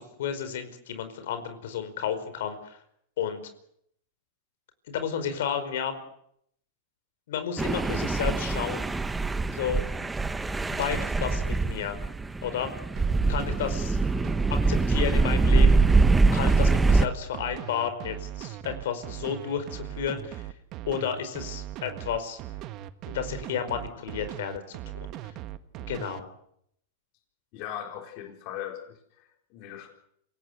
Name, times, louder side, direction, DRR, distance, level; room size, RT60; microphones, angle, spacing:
voice 1, 0.0-2.8 3.2-3.4 4.9-5.9 7.3-9.0 9.5-9.8 10.7-12.0 12.4-12.7 13.3-14.0 14.5-15.8 16.2-20.5 20.8-22.4 23.1-24.8 25.2-25.3 25.9-26.3, left 8 dB, 75° left, 10 dB, 4.9 m, -32 dB
sound 1, 7.6-17.1, right 3 dB, 10° right, 1.0 m, -23 dB
sound 2, 13.0-26.2, right 13 dB, 40° right, 1.5 m, -39 dB
voice 2, 27.5-29.9, left 10 dB, 50° left, 3 dB, 4.2 m, -39 dB
27.5 x 17.5 x 8.0 m, 0.71 s
supercardioid pair, 135°, 0 cm